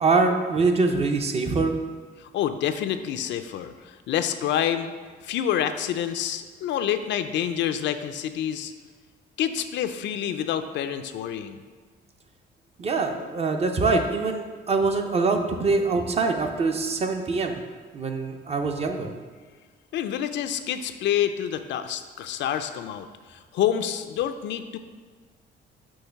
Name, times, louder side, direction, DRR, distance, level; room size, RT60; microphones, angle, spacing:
voice 1, 0.0-1.7 12.8-17.6 17.9-19.1, right 3 dB, 35° right, 5 dB, 0.6 m, -24 dB
voice 2, 2.2-4.9 5.2-8.7 9.4-11.6 19.9-24.8, left 10 dB, 70° left, 9 dB, 0.4 m, -28 dB
6.3 x 3.1 x 5.8 m, 1.5 s
cardioid pair, 130°, 19 cm